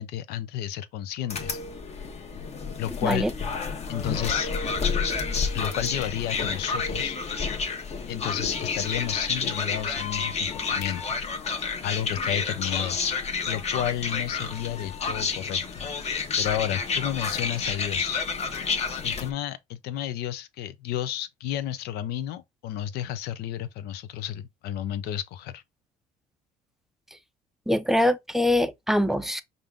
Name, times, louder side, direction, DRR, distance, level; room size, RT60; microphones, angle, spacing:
voice 1, 0.0-1.6 2.8-3.2 3.9-4.5 5.5-7.2 8.1-11.1 11.8-15.9 16.4-18.2 19.0-25.6, left 11 dB, 80° left, 0.6 m, -32 dB
sound 1, 1.3-19.3, left 5 dB, 40° left, 1.1 m, -30 dB
voice 2, 27.7-29.4, left 1 dB, ahead, 0.4 m, -23 dB
5.4 x 2.5 x 3.4 m
cardioid pair, 105°, 16 cm